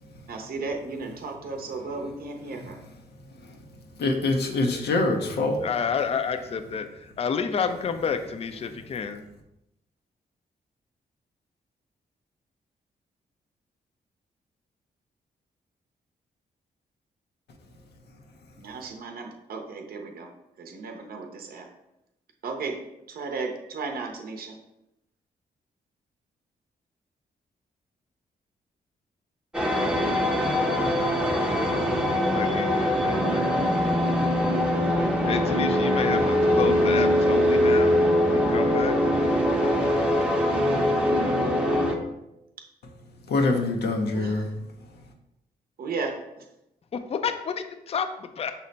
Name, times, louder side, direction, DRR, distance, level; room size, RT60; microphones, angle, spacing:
voice 1, 0.3-2.8 18.6-20.3 20.6-21.7 22.4-22.8 23.1-24.6 44.1-44.5 45.8-46.2, right 4 dB, 65° right, 3 dB, 0.6 m, -34 dB
voice 2, 4.0-5.6 43.3-44.5, left 2 dB, 85° left, 3 dB, 0.6 m, -24 dB
voice 3, 5.6-9.2 32.3-33.6 35.2-38.0 38.3-39.0 47.1-48.5, left 6 dB, 35° left, 8 dB, 0.4 m, -30 dB
sound 1, 29.5-42.0, equal, 5° right, 0.7 m, -22 dB
5.4 x 2.1 x 3.9 m, 0.88 s
cardioid pair, 70°, 17 cm